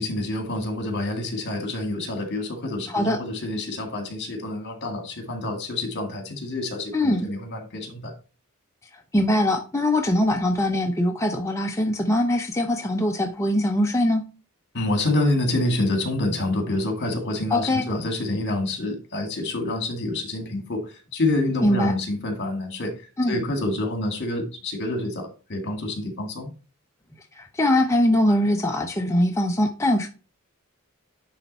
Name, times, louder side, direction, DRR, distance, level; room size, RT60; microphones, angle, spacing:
voice 1, 0.0-8.1 14.7-22.9 23.3-26.5, left 2 dB, 55° left, 2.0 m, -27 dB
voice 2, 2.9-3.2 6.9-7.3 9.1-14.2 17.5-17.9 21.6-21.9 23.2-23.4 27.4-30.1, left 1 dB, 15° left, 0.6 m, -22 dB
10.0 x 3.4 x 4.1 m
head